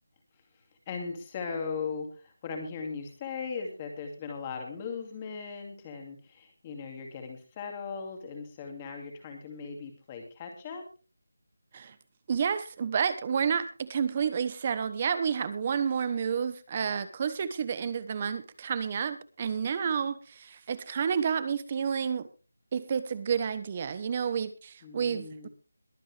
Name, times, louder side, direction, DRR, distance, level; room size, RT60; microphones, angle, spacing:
voice 1, 0.9-10.8 24.8-25.5, left 5 dB, 15° left, 3 dB, 2.4 m, -38 dB
voice 2, 12.3-22.3 22.7-25.5, right 7 dB, 20° right, 14 dB, 1.0 m, -30 dB
22.5 x 8.8 x 3.4 m, 0.33 s
figure-of-eight pair, 180°, 0 cm